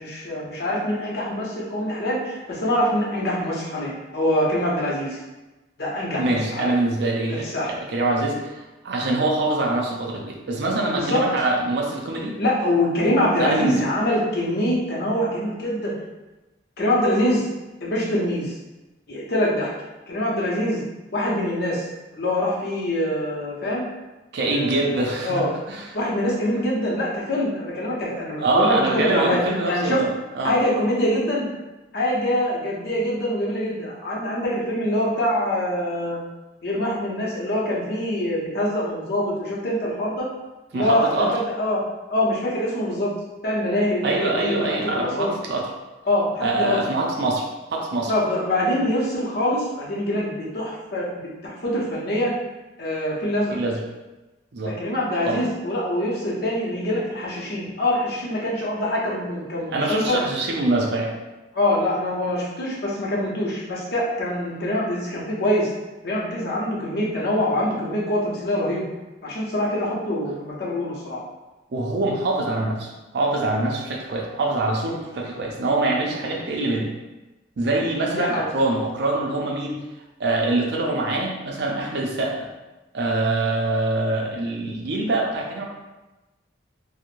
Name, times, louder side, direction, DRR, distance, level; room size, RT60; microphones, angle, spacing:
voice 1, 0.0-5.2 5.8-6.7 7.3-7.7 11.0-11.3 12.4-15.9 16.8-17.5 17.8-18.5 19.1-19.7 20.1-20.8 21.1-21.8 22.2-23.8 24.5-25.5 25.9-29.4 29.6-30.0 30.4-31.5 31.9-36.2 36.6-40.3 40.7-41.8 42.1-43.1 43.4-45.3 46.1-46.8 48.1-51.1 51.4-52.3 52.8-53.6 54.6-60.2 61.5-65.7 66.0-68.9 69.2-71.2 78.1-78.5, left 1 dB, 60° left, -5 dB, 0.7 m, -24 dB
voice 2, 6.1-12.4 13.4-13.8 24.3-25.9 28.4-30.6 40.7-41.4 44.0-45.7 46.4-48.1 53.5-53.8 54.5-54.8 55.2-55.4 59.7-61.1 71.7-76.9 77.6-79.8 80.2-82.5 82.9-85.6, right 2 dB, 65° right, 0 dB, 0.5 m, -24 dB
3.0 x 2.0 x 2.5 m, 1.1 s
head